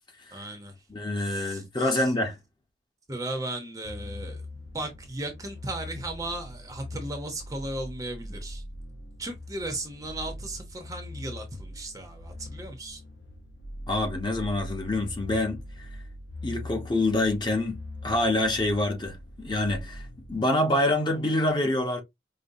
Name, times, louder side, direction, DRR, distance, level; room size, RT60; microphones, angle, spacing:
voice 1, 0.3-0.7 1.5-1.6 1.9-2.0 3.1-4.4 4.7-8.6 9.2-13.0, right 2 dB, 20° right, 0.7 m, -36 dB
voice 2, 0.9-2.4 13.9-15.9 16.4-20.0 20.3-22.0, left 1 dB, 25° left, 0.9 m, -26 dB
sound 1, 3.9-20.4, left 1 dB, 85° left, 0.7 m, -42 dB
5.2 x 2.1 x 2.6 m
head